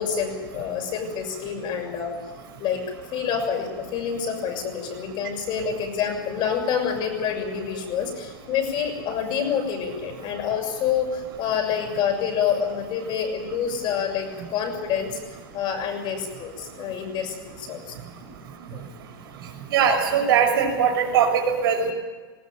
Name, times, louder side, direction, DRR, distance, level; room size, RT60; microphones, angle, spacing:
voice 1, 0.0-2.1 2.6-2.8 3.1-18.0 18.7-18.8, left 7 dB, 40° left, 3 dB, 6.7 m, -27 dB
voice 2, 19.7-21.9, right 7 dB, 80° right, 1 dB, 6.1 m, -20 dB
20.0 x 17.0 x 9.3 m, 1.4 s
supercardioid pair, 130°, 12 cm